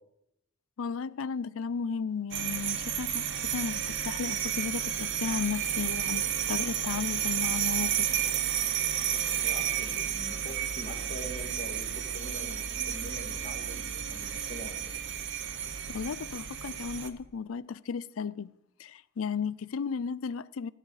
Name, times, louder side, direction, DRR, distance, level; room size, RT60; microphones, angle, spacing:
voice 1, 0.8-3.2 3.5-8.1 15.9-18.5 18.8-20.7, left 6 dB, 90° left, 0.5 m, -34 dB
sound 1, 2.3-17.1, right 9 dB, 65° right, 1.0 m, -32 dB
voice 2, 9.4-14.9, equal, 35° left, 2.1 m, -44 dB
15.5 x 11.5 x 4.9 m
head